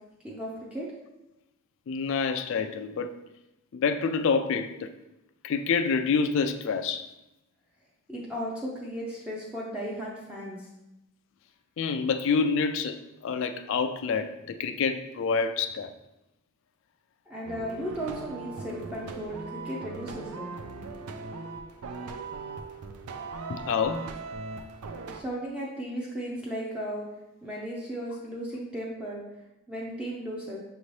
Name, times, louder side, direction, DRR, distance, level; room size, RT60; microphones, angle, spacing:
voice 1, 0.2-0.9 8.1-10.7 17.3-20.5 25.1-27.1 27.4-29.2 29.7-30.6, equal, 5° right, 0.5 m, -35 dB
voice 2, 1.9-3.2 3.7-4.9 5.4-7.1 11.8-15.9 23.5-24.1, left 5 dB, 60° left, 0.3 m, -27 dB
sound 1, 17.4-25.2, right 4 dB, 90° right, 0.5 m, -39 dB
5.9 x 2.8 x 3.1 m
head